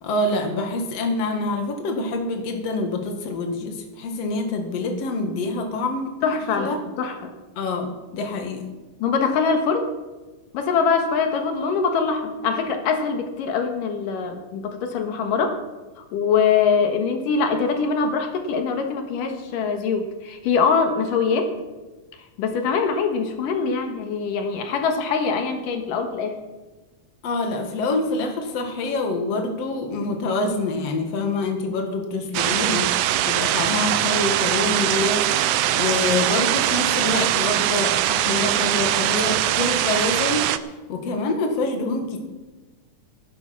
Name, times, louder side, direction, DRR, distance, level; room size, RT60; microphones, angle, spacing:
voice 1, 0.0-6.8 7.6-8.7 27.2-40.5 40.9-42.2, left 2 dB, 55° left, 4 dB, 2.7 m, -26 dB
voice 2, 6.2-7.3 9.0-9.9 10.5-15.6 16.1-21.5 22.4-26.4, left 5 dB, 85° left, 5 dB, 3.1 m, -23 dB
sound 1, 32.3-40.6, right 12 dB, 85° right, 1.4 m, -22 dB
16.0 x 11.0 x 6.0 m, 1.2 s
omnidirectional pair, 3.7 m